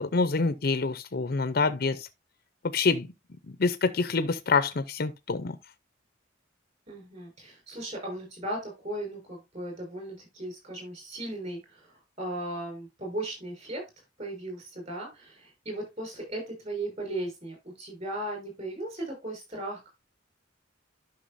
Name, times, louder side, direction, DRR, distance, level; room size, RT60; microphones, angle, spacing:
voice 1, 0.0-2.1 2.7-3.1 3.6-5.6, left 4 dB, 50° left, 0.6 m, -26 dB
voice 2, 6.9-13.8 14.2-19.9, right 1 dB, 35° right, 5.2 m, -37 dB
11.5 x 5.9 x 2.6 m
head